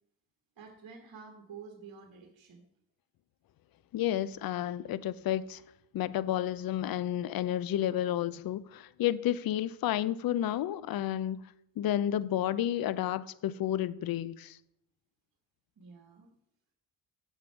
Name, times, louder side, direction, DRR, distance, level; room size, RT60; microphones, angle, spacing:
voice 1, 0.6-2.7 15.8-16.3, right 5 dB, 50° right, 1.5 m, -49 dB
voice 2, 3.9-5.6 5.9-11.4 11.8-14.6, left 11 dB, 50° left, 0.6 m, -31 dB
7.8 x 7.6 x 4.6 m
supercardioid pair, 65°, 45 cm